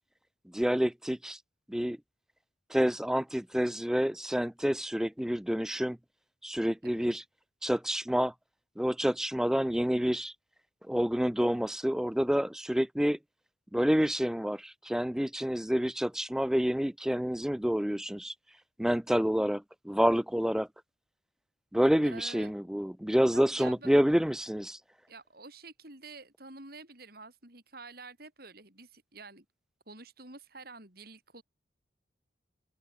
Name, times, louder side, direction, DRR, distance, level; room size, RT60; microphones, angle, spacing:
voice 1, 0.5-1.4 1.7-2.0 2.7-6.0 6.4-7.2 7.6-8.3 8.8-10.3 10.9-13.2 13.7-18.3 18.8-20.7 21.7-24.8, equal, 5° right, 0.4 m, -28 dB
voice 2, 22.0-22.5 23.3-23.9 25.1-29.4 29.9-31.4, right 3 dB, 55° right, 6.6 m, -49 dB
open air
head